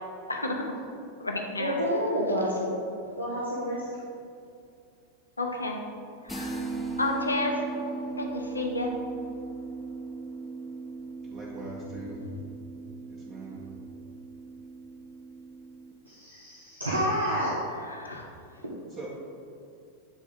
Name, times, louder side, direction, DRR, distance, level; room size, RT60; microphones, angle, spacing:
voice 1, 0.3-0.6 1.2-1.8 5.4-5.8 6.2-6.7 7.0-7.6 8.1-8.9 17.9-18.3, left 2 dB, 80° left, 2 dB, 0.7 m, -31 dB
voice 2, 1.6-2.7 3.2-3.9 16.0-17.6, equal, 80° right, -7 dB, 0.8 m, -29 dB
sound 1, 6.3-15.9, right 4 dB, 5° left, 0.6 m, -38 dB
voice 3, 11.2-12.2 13.0-13.6 19.0-19.1, right 3 dB, 30° right, -5 dB, 0.8 m, -42 dB
8.0 x 3.5 x 3.6 m, 2.5 s
figure-of-eight pair, 90°, 0 cm